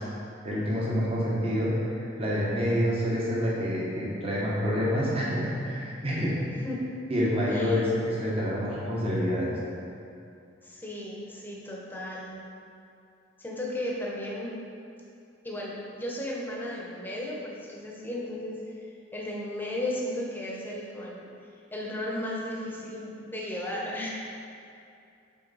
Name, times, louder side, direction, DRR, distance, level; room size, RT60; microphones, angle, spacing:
voice 1, 0.4-6.3 7.1-9.5, equal, 30° right, -6 dB, 0.9 m, -27 dB
voice 2, 6.5-6.9 7.5-7.8 10.6-12.4 13.4-14.5 15.4-21.3 21.7-24.1, left 1 dB, 10° left, -4 dB, 0.8 m, -35 dB
5.7 x 4.4 x 4.0 m, 2.5 s
head